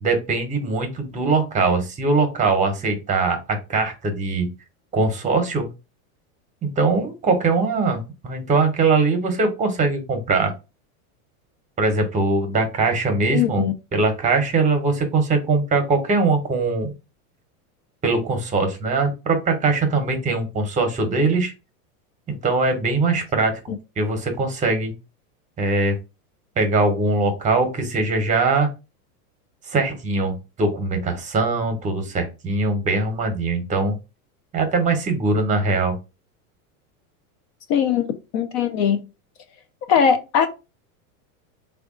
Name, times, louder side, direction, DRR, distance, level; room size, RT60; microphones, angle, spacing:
voice 1, 0.0-4.5 4.9-5.7 6.6-10.5 11.8-16.9 18.0-21.5 22.3-24.9 25.6-26.0 26.6-28.7 29.7-34.0 34.5-36.0, right 3 dB, 15° right, 0.8 m, -21 dB
voice 2, 13.3-13.7 37.7-39.1 39.9-40.5, left 7 dB, 40° left, 0.4 m, -20 dB
3.4 x 2.3 x 3.6 m
supercardioid pair, 130°, 44 cm